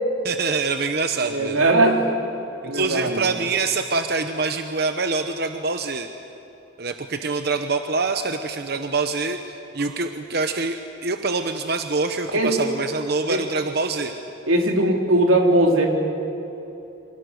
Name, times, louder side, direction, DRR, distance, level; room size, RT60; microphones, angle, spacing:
voice 1, 0.2-1.6 2.6-6.1 6.8-14.1, right 4 dB, 50° right, 6 dB, 1.0 m, -25 dB
voice 2, 1.2-2.0 2.6-3.2 12.3-12.6 13.3-13.4 14.5-15.9, right 1 dB, 90° right, 2 dB, 3.5 m, -19 dB
29.5 x 26.0 x 6.6 m, 3.0 s
head